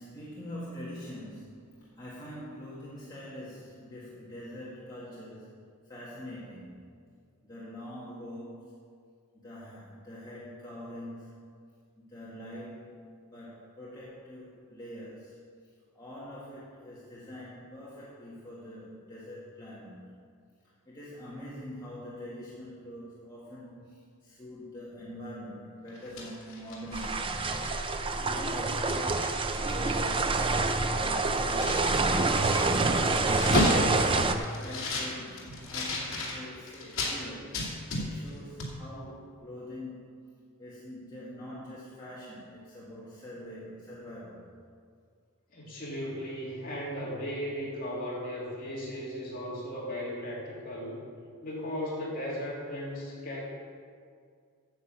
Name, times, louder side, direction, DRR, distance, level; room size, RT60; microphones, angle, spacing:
voice 1, 0.0-6.8 7.4-8.7 9.3-11.5 12.0-13.0 13.3-20.1 20.9-27.5 28.2-32.0 32.6-33.7 34.5-37.6 37.9-40.1 40.6-44.5, equal, 20° left, -9 dB, 1.8 m, -44 dB
sound 1, 25.9-27.9 28.4-28.5 28.8-30.1 30.3-37.2 37.5-38.3 38.6-38.7, left 2 dB, 60° left, 2.5 m, -34 dB
sound 2, 26.9-34.3, right 3 dB, 25° right, 0.5 m, -27 dB
voice 2, 45.5-51.0 51.4-53.4, equal, 40° left, -5 dB, 3.0 m, -36 dB
9.4 x 7.5 x 7.3 m, 2.1 s
head